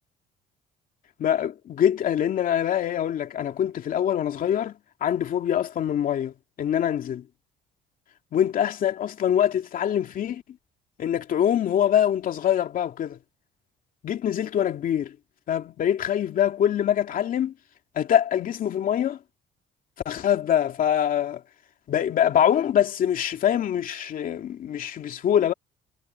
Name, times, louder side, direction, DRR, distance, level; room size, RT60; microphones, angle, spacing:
voice 1, 1.2-4.7 5.0-7.2 8.3-10.4 11.0-13.2 14.0-15.1 15.5-17.5 18.0-19.2 20.0-21.4 21.9-25.5, left 10 dB, 55° left, 2.5 m, -24 dB
cardioid pair, 110°, 17 cm